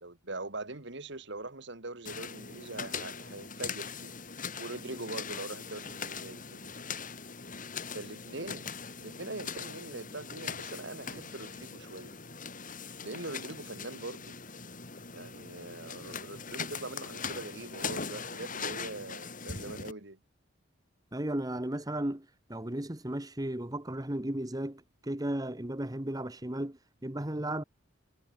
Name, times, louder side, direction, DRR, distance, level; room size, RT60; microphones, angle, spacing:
voice 1, 0.0-4.1 4.6-6.7 7.9-8.7 9.0-12.2 13.0-14.3 15.1-20.2, right 2 dB, 60° right, 2.5 m, -42 dB
sound 1, 2.0-19.9, left 5 dB, 40° left, 7.3 m, -41 dB
voice 2, 21.1-27.6, right 1 dB, 20° right, 1.3 m, -35 dB
head